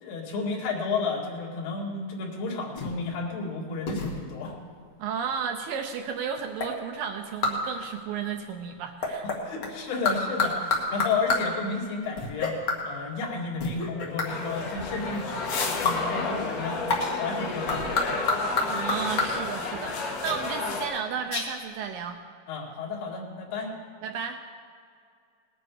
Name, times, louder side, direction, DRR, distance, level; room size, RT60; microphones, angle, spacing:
voice 1, 0.0-4.6 9.2-18.2 22.5-23.7, left 4 dB, 80° left, -3 dB, 4.1 m, -32 dB
sound 1, 2.7-3.0 3.9-4.3 6.6-6.8 7.4-7.7 9.0-9.7 10.0-11.6 12.2-12.8 13.6-14.3 15.8-16.1 16.9-17.1 17.7-19.4 20.2-20.4 21.0-21.1 21.3-21.5, left 3 dB, 45° left, 2.0 m, -28 dB
voice 2, 5.0-9.3 18.7-22.2 24.0-24.4, right 7 dB, 80° right, 5 dB, 2.2 m, -33 dB
sound 2, 14.3-20.9, left 3 dB, 60° left, 2.9 m, -31 dB
19.5 x 10.0 x 4.8 m, 2.2 s
omnidirectional pair, 4.5 m